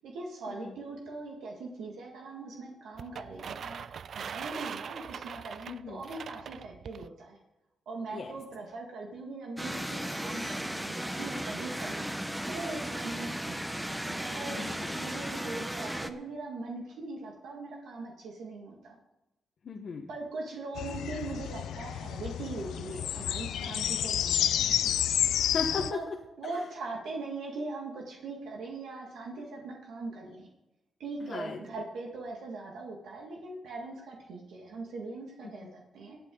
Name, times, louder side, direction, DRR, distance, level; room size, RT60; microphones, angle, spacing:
voice 1, 0.0-7.4 7.9-12.1 12.5-14.7 15.0-19.0 20.1-24.9 25.7-26.1 26.4-30.5 31.0-36.2, right 3 dB, 85° right, -1 dB, 1.9 m, -41 dB
sound 1, 3.0-7.1, right 7 dB, 60° right, 0.4 m, -41 dB
voice 2, 5.7-6.0 8.1-8.3 14.5-15.0 19.6-20.1 25.4-26.1 26.4-26.6 31.2-31.6 35.4-35.7, left 4 dB, 55° left, 0 dB, 1.1 m, -37 dB
sound 2, 9.6-16.1, equal, 5° right, 0.9 m, -35 dB
sound 3, 20.8-25.9, left 10 dB, 85° left, 0.4 m, -30 dB
18.0 x 8.8 x 3.9 m, 0.93 s
cardioid pair, 90°, 0 cm